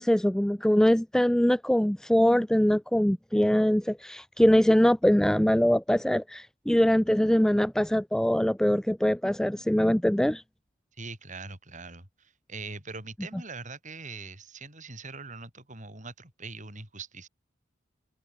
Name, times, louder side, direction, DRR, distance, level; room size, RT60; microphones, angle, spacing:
voice 1, 0.0-10.4, equal, 5° left, 0.3 m, -23 dB
voice 2, 11.0-17.3, right 3 dB, 40° right, 6.9 m, -42 dB
head